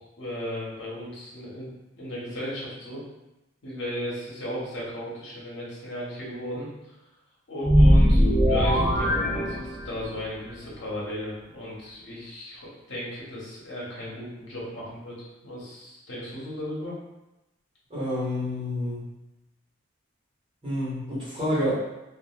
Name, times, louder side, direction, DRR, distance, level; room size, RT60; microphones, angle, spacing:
voice 1, 0.0-3.0 3.6-6.7 7.5-16.9, equal, 65° left, -5 dB, 1.0 m, -36 dB
sound 1, 7.6-10.2, equal, ahead, 0.6 m, -20 dB
voice 2, 17.9-19.0 20.6-21.7, left 1 dB, 25° right, -11 dB, 1.2 m, -28 dB
2.9 x 2.4 x 2.3 m, 0.97 s
head